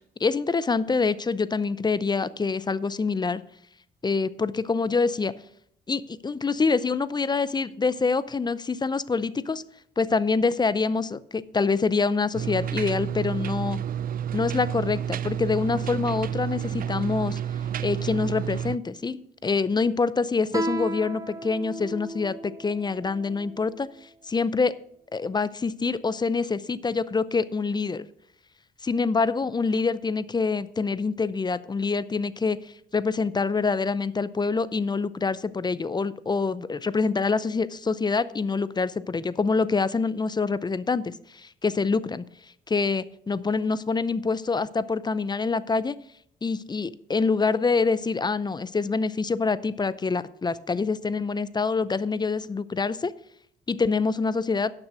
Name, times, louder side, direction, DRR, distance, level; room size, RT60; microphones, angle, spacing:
voice 1, 0.2-3.4 4.0-5.3 5.9-9.6 10.0-13.8 14.3-17.4 17.8-23.9 24.3-24.7 25.1-28.1 28.8-32.6 32.9-42.2 42.7-46.0 46.4-53.1 53.7-54.7, left 4 dB, 20° left, 17 dB, 0.5 m, -26 dB
sound 1, 12.3-18.8, right 9 dB, 45° right, 0.4 m, -30 dB
Guitar, 20.5-23.8, right 2 dB, 15° right, 1.0 m, -34 dB
11.0 x 6.2 x 6.2 m, 0.70 s
cardioid pair, 90°, 20 cm